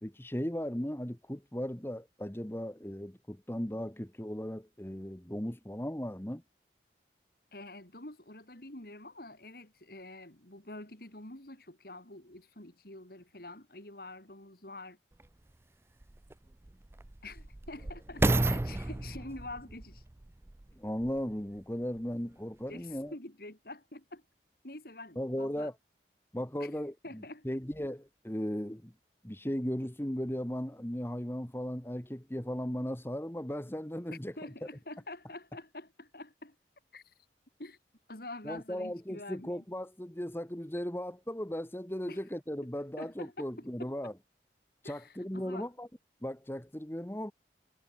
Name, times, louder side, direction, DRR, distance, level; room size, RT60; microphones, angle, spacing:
voice 1, 0.0-6.4 20.8-23.1 25.2-25.7 26.3-28.9 29.2-34.3 38.4-44.1 44.8-45.9 46.2-47.3, equal, 15° left, 1.3 m, -37 dB
voice 2, 7.5-15.0 17.2-20.0 22.7-24.2 24.6-25.7 26.6-26.7 27.0-27.5 34.4-36.6 36.9-37.1 37.6-37.8 38.1-39.6 42.1-42.2 42.6-42.7 43.0-43.9 44.8-45.7, left 2 dB, 55° left, 3.7 m, -47 dB
sound 1, 15.2-15.3 16.0-21.3 22.0-22.1, right 2 dB, 15° right, 0.3 m, -33 dB
head